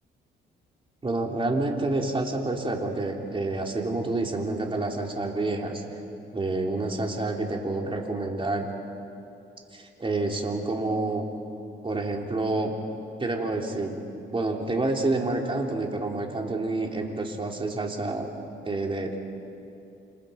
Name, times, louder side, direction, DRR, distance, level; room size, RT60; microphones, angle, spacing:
voice 1, 1.0-5.8 6.3-8.7 9.7-11.3 11.8-12.7 13.2-14.0 14.3-18.3 18.6-19.2, right 2 dB, 25° right, 1 dB, 3.5 m, -28 dB
28.5 x 28.0 x 5.4 m, 2.7 s
cardioid pair, 90°, 20 cm